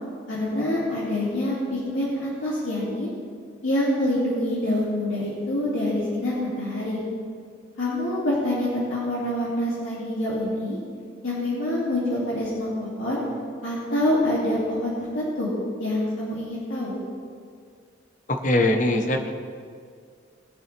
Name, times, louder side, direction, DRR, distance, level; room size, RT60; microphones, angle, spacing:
voice 1, 0.3-3.1 3.6-7.0 7.8-10.8 11.2-13.2 13.6-15.5 15.8-16.9, left 1 dB, 80° left, -7 dB, 2.7 m, -26 dB
voice 2, 18.4-19.3, left 1 dB, 40° left, 4 dB, 1.0 m, -21 dB
21.0 x 7.2 x 3.4 m, 2.1 s
head